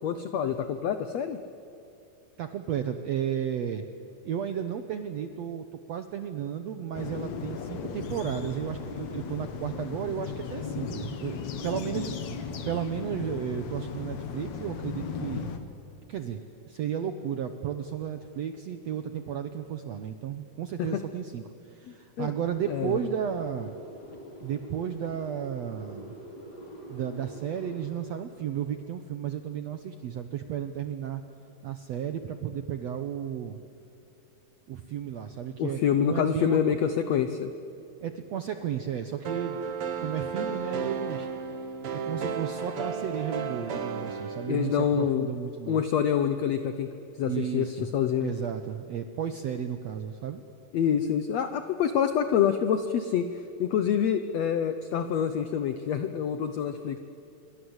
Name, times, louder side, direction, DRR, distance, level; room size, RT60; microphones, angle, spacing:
voice 1, 0.0-1.4 20.8-21.0 22.2-22.3 22.7-23.0 35.6-37.5 44.5-45.3 45.7-46.9 47.2-48.3 50.7-57.0, left 8 dB, 80° left, 9 dB, 1.5 m, -26 dB
voice 2, 2.4-3.8 4.2-15.5 16.1-23.7 24.4-26.2 26.9-31.2 31.6-33.6 34.7-36.6 38.0-39.7 40.0-41.3 41.9-45.8 47.2-47.9 48.2-50.4, right 9 dB, 75° right, 8 dB, 1.5 m, -33 dB
sound 1, 6.9-15.6, left 6 dB, 55° left, 2.6 m, -36 dB
sound 2, 22.4-28.0, equal, 25° left, 5.0 m, -45 dB
sound 3, 39.2-45.1, right 5 dB, 50° right, 1.9 m, -34 dB
27.5 x 23.5 x 8.0 m, 2.9 s
omnidirectional pair, 4.3 m